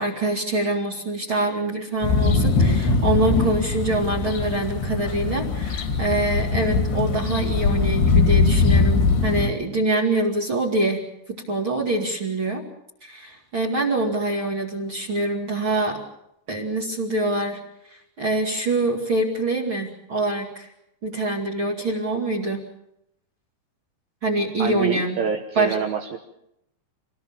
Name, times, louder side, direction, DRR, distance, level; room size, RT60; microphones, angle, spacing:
voice 1, 0.0-11.0 11.3-12.6 13.0-16.0 16.5-20.7 21.0-22.6 24.2-25.2 25.5-25.8, right 2 dB, 35° right, 0 dB, 2.6 m, -25 dB
sound 1, 2.0-9.5, left 4 dB, 85° left, 4.6 m, -21 dB
voice 2, 24.6-26.2, right 6 dB, 65° right, 3 dB, 2.8 m, -26 dB
26.0 x 19.0 x 7.2 m, 0.80 s
omnidirectional pair, 4.9 m